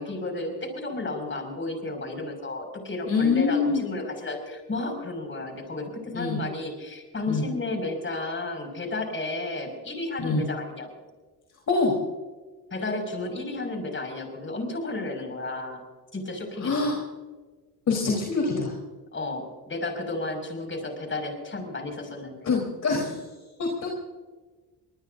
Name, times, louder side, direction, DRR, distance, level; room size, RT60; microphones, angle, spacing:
voice 1, 0.0-10.9 12.7-15.8 16.1-16.7 19.1-22.5, left 2 dB, 30° left, 4 dB, 6.1 m, -32 dB
voice 2, 3.1-3.8 6.1-6.4 7.3-7.4 10.2-10.4 11.7-11.9 16.6-17.0 17.9-18.7 22.4-23.2 23.6-24.0, left 4 dB, 50° left, -1 dB, 4.1 m, -25 dB
24.5 x 19.0 x 2.7 m, 1.3 s
cardioid pair, 85°, 39 cm